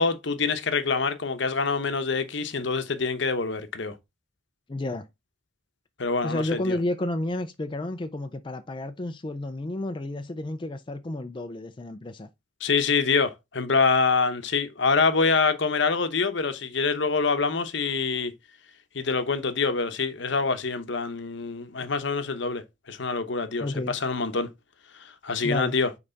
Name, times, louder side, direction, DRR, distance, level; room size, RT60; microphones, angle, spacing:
voice 1, 0.0-3.9 6.0-6.8 12.6-18.3 18.9-24.5 25.0-25.9, left 4 dB, 60° left, 0.9 m, -25 dB
voice 2, 4.7-5.1 6.2-12.3 23.6-24.0 25.4-25.7, left 1 dB, 25° left, 0.4 m, -31 dB
5.6 x 4.7 x 4.0 m
head